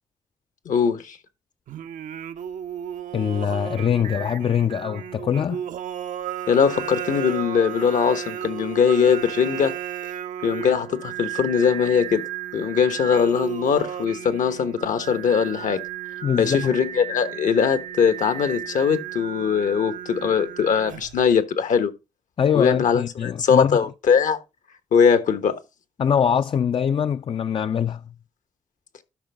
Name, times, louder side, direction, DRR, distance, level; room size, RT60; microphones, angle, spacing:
voice 1, 0.6-1.2 6.5-9.8 10.4-12.2 12.5-15.8 16.4-21.9 22.5-24.4 24.9-25.6, left 6 dB, 75° left, 1.1 m, -21 dB
Singing, 1.7-21.3, right 10 dB, 75° right, 0.6 m, -34 dB
voice 2, 3.1-5.6 16.2-16.8 22.4-23.8 26.0-28.0, left 8 dB, 40° left, 0.3 m, -23 dB
12.0 x 5.2 x 3.4 m
supercardioid pair, 55°, 13 cm